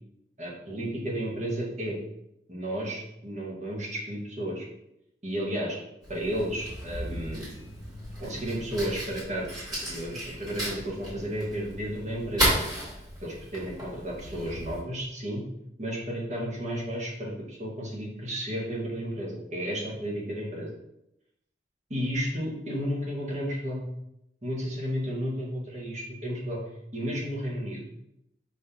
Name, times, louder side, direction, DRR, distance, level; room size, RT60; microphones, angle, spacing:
voice 1, 0.4-2.0 2.5-4.7 5.2-5.8 6.1-7.5 8.2-12.6 13.2-15.4 15.8-20.7 21.9-23.8 24.4-26.6 26.9-27.9, equal, 40° right, -4 dB, 1.9 m, -33 dB
Fire, 6.0-14.8, right 1 dB, 20° right, 2.5 m, -34 dB
6.1 x 5.5 x 3.0 m, 0.81 s
head